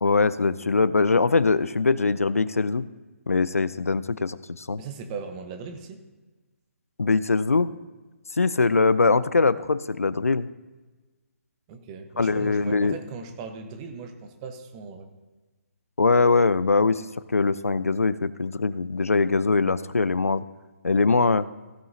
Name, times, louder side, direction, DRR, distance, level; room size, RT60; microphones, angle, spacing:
voice 1, 0.0-2.8 3.3-4.8 7.0-7.7 8.4-10.5 12.2-13.0 16.0-17.0 17.3-20.4 20.8-21.5, left 4 dB, 80° left, 17 dB, 0.4 m, -22 dB
voice 2, 4.8-6.0 11.7-15.1, right 5 dB, 25° right, 7 dB, 1.1 m, -38 dB
15.5 x 9.0 x 2.8 m, 1.2 s
figure-of-eight pair, 140°, 8 cm